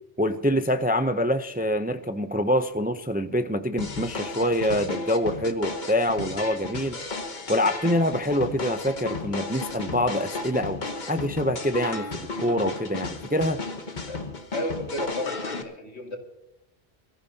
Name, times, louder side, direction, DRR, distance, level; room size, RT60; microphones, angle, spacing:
voice 1, 0.2-7.0 7.5-13.6, equal, 15° right, 9 dB, 0.4 m, -25 dB
sound 1, 3.8-15.6, left 3 dB, 45° left, 1.4 m, -34 dB
voice 2, 14.5-16.2, left 1 dB, 80° left, 2 dB, 2.4 m, -33 dB
23.5 x 14.0 x 2.8 m, 0.88 s
omnidirectional pair, 1.1 m